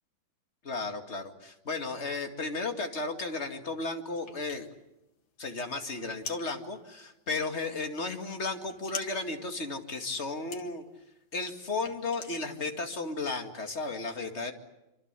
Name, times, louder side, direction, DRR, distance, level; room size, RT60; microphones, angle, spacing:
voice 1, 0.6-4.7 5.4-10.8 11.3-14.5, left 3 dB, 35° left, 5 dB, 2.4 m, -34 dB
sound 1, 4.1-13.0, left 5 dB, 90° left, 2.7 m, -47 dB
26.0 x 25.5 x 8.3 m, 0.91 s
omnidirectional pair, 2.0 m